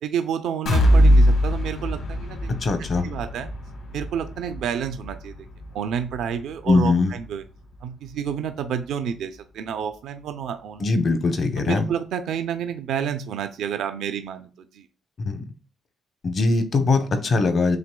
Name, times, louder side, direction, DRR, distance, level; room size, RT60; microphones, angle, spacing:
voice 1, 0.0-2.5 2.8-3.5 3.9-5.5 5.7-7.4 7.8-10.8 11.6-14.8, right 8 dB, 80° right, 0.5 m, -29 dB
sound 1, 0.7-8.4 8.8-9.0 9.4-9.5, equal, 70° left, 1.5 m, -23 dB
voice 2, 2.5-3.1 6.7-7.1 10.8-11.9 15.2-15.5 16.2-17.8, left 3 dB, 50° left, 0.8 m, -21 dB
7.6 x 3.0 x 2.3 m
cardioid pair, 90°, 0 cm